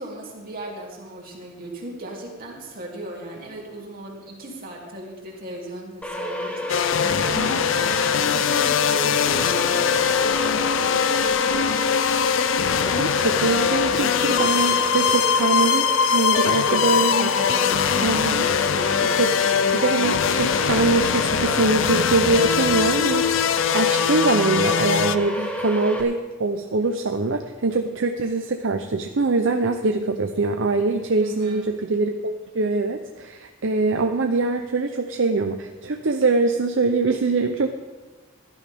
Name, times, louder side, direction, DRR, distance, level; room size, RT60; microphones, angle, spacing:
voice 1, 0.0-7.9 8.1-11.9 16.3-16.8 17.3-18.2 31.2-31.7, right 1 dB, 45° right, -2 dB, 2.9 m, -37 dB
sound 1, 6.0-26.0, left 1 dB, 5° left, 1.2 m, -30 dB
sound 2, 6.7-25.2, left 7 dB, 65° left, 0.5 m, -22 dB
voice 2, 13.0-17.3 18.0-18.5 19.0-23.4 23.7-37.8, right 3 dB, 65° right, 5 dB, 0.7 m, -23 dB
16.5 x 11.5 x 3.6 m, 1.3 s
head